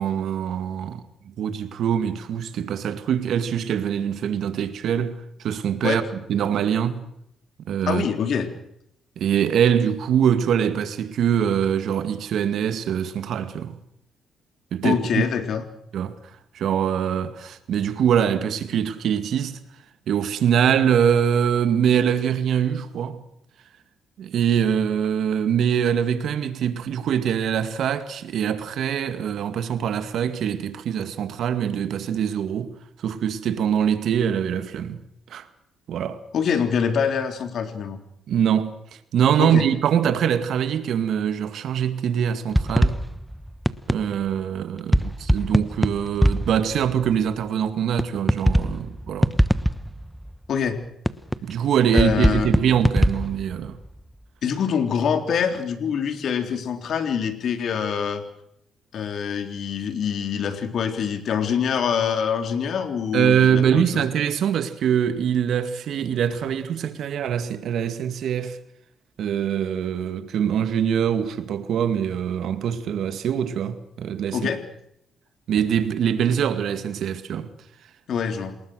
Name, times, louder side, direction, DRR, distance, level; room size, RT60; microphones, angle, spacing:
voice 1, 0.0-7.1 7.6-8.1 9.2-13.7 14.7-15.3 15.9-16.2 16.5-19.6 20.1-23.2 24.2-35.0 35.3-35.5 35.9-36.2 38.3-38.7 39.1-43.0 43.9-49.3 51.4-53.8 63.1-68.6 69.2-74.5 75.5-77.5, right 8 dB, 70° right, 2.1 m, -23 dB
voice 2, 7.9-8.5 14.8-15.6 36.3-38.0 39.4-39.6 50.5-50.8 51.9-52.5 54.4-58.2 58.9-64.0 74.3-74.6 78.1-78.6, left 7 dB, 65° left, 3.7 m, -25 dB
sound 1, 42.5-44.1 44.9-47.2 48.0-48.1 48.3-50.3 51.1-51.5 52.0-53.9, equal, ahead, 1.1 m, -21 dB
28.0 x 20.5 x 6.4 m
cardioid pair, 90°, 0 cm